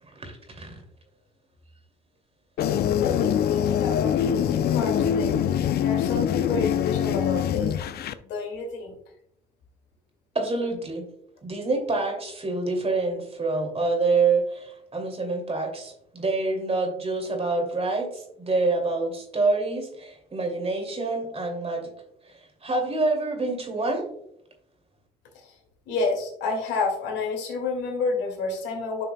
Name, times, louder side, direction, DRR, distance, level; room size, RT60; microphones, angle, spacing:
voice 1, 0.2-0.8 10.3-11.1 11.4-21.9 22.3-24.0, right 3 dB, 35° right, 3 dB, 2.5 m, -27 dB
sound 1, 2.6-8.1, left 9 dB, 65° left, 0.5 m, -24 dB
voice 2, 3.0-7.7 8.2-8.9 25.9-29.0, left 3 dB, 80° left, 2 dB, 2.2 m, -30 dB
10.5 x 5.8 x 2.2 m, 0.72 s
supercardioid pair, 60°, 18 cm